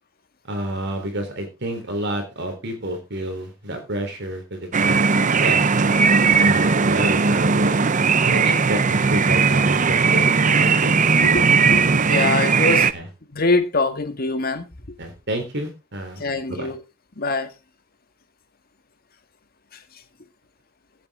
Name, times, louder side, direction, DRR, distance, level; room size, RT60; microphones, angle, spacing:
voice 1, 0.5-5.0 5.4-5.6 6.4-7.8 8.2-10.9 12.9-13.1 15.0-16.2 16.5-16.7, right 1 dB, 55° right, 3.5 m, -29 dB
sound 1, 4.7-12.9, right 5 dB, 40° right, 0.7 m, -18 dB
voice 2, 11.7-12.9 13.3-14.7 16.2-16.8 17.2-17.5, left 3 dB, 45° left, 1.7 m, -23 dB
17.0 x 8.6 x 3.6 m
head